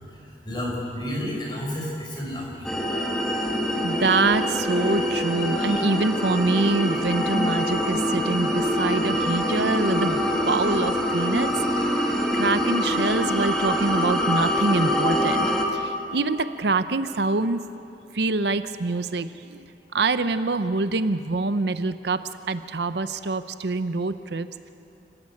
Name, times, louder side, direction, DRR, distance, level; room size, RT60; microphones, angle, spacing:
voice 1, 0.4-2.7, left 1 dB, 25° left, -2 dB, 5.1 m, -31 dB
sound 1, 2.6-15.6, equal, 5° left, 1.8 m, -24 dB
voice 2, 3.8-17.6 18.1-19.7 19.9-24.7, right 3 dB, 70° right, 12 dB, 0.7 m, -25 dB
26.5 x 15.0 x 8.5 m, 2.8 s
head